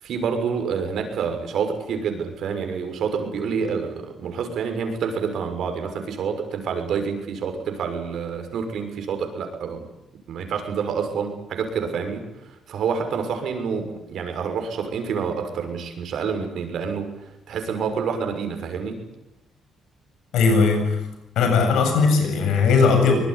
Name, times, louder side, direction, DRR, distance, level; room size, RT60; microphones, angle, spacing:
voice 1, 0.0-9.8 10.3-17.1 17.5-19.0, right 6 dB, 70° right, 6 dB, 6.4 m, -28 dB
voice 2, 20.3-21.0 21.4-23.2, left 4 dB, 85° left, 5 dB, 7.8 m, -18 dB
24.5 x 20.5 x 9.9 m, 0.85 s
cardioid pair, 90°, 0 cm